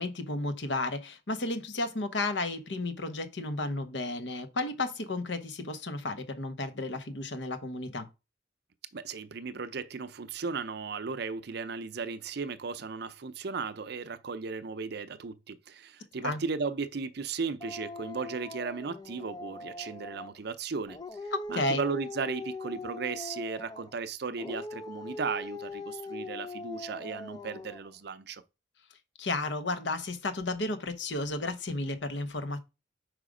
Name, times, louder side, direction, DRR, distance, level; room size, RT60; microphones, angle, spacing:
voice 1, 0.0-8.1 16.2-16.4 21.3-21.8 29.2-32.6, left 2 dB, 70° left, 0.9 m, -33 dB
voice 2, 8.9-28.4, right 4 dB, 60° right, 0.6 m, -36 dB
Dog, 17.6-20.4 20.9-24.0 24.4-27.9, left 2 dB, 20° left, 0.5 m, -41 dB
5.1 x 4.9 x 5.0 m
head